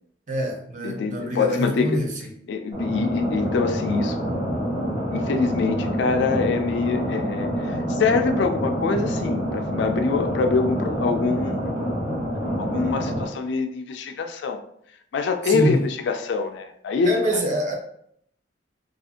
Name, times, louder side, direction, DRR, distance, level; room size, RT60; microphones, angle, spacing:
voice 1, 0.3-2.1 15.4-15.8 17.0-17.7, right 1 dB, 40° right, 0 dB, 0.5 m, -25 dB
voice 2, 0.8-2.0 2.5-4.2 5.1-11.8 12.6-14.6 15.1-17.4, left 4 dB, 65° left, 6 dB, 0.3 m, -25 dB
sound 1, 2.7-13.2, equal, 20° right, 1.3 m, -27 dB
2.4 x 2.4 x 2.7 m, 0.69 s
head